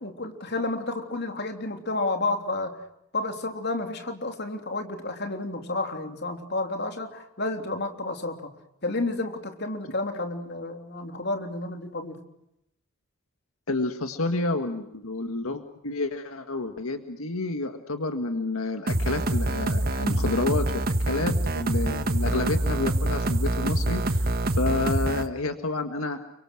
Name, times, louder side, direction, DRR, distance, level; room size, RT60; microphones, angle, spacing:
voice 1, 0.0-2.8 3.1-8.5 8.8-12.2, left 2 dB, 50° left, 5 dB, 3.4 m, -31 dB
voice 2, 13.7-20.7 21.0-26.2, left 2 dB, 90° left, 7 dB, 1.8 m, -29 dB
sound 1, 18.9-25.3, right 1 dB, 45° right, 1.6 m, -25 dB
30.0 x 24.5 x 6.3 m, 0.82 s
head